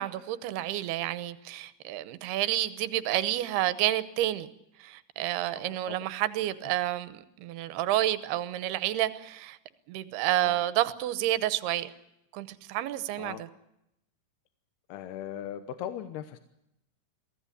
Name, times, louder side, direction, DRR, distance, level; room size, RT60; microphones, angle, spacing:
voice 1, 0.0-4.5 4.8-9.6 9.9-11.9 12.3-13.5, right 14 dB, 85° right, 13 dB, 3.0 m, -30 dB
voice 2, 5.6-6.0 10.3-10.5 13.2-13.4 14.9-16.4, left 10 dB, 80° left, 9 dB, 3.1 m, -39 dB
23.0 x 16.5 x 9.9 m, 0.83 s
omnidirectional pair, 4.5 m